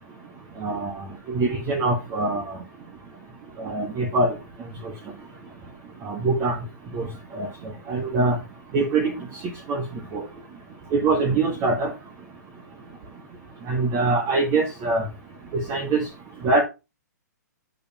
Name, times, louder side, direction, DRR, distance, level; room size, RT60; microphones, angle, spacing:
voice 1, 0.6-2.6 3.6-4.4 4.8-4.9 6.0-6.6 6.9-7.1 7.3-7.5 7.9-8.4 8.7-9.4 9.7-9.8 10.1-10.2 10.9-11.9 13.7-15.1 15.5-16.0 16.4-16.6, right 3 dB, 30° right, 2 dB, 1.7 m, -23 dB
8.0 x 7.0 x 2.9 m, 0.26 s
hypercardioid pair, 130°, 10 cm